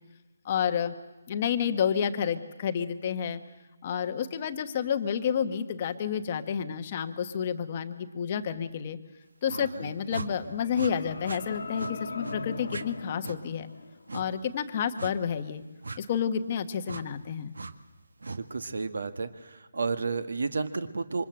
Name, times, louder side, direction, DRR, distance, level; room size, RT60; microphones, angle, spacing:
voice 1, 0.4-0.9 1.3-3.4 3.8-9.0 9.4-13.7 14.1-15.6 16.0-17.5, left 8 dB, 20° left, 9 dB, 1.1 m, -30 dB
sound 1, 9.5-9.7 10.1-10.3 10.7-10.9 11.2-11.4 11.8-11.9 12.2-12.4 12.7-12.8 13.2-13.4 14.1-14.3 15.0-15.2 15.8-16.0 16.8-17.0 17.5-17.7 18.2-18.4, right 3 dB, 85° right, 1.8 m, -37 dB
voice 2, 9.6-9.9 18.3-21.2, right 4 dB, 60° right, 11 dB, 1.5 m, -32 dB
sound 2, 10.2-14.3, left 4 dB, 45° left, 1.5 m, -40 dB
28.0 x 25.0 x 7.7 m, 1.1 s
hypercardioid pair, 180°, 0 cm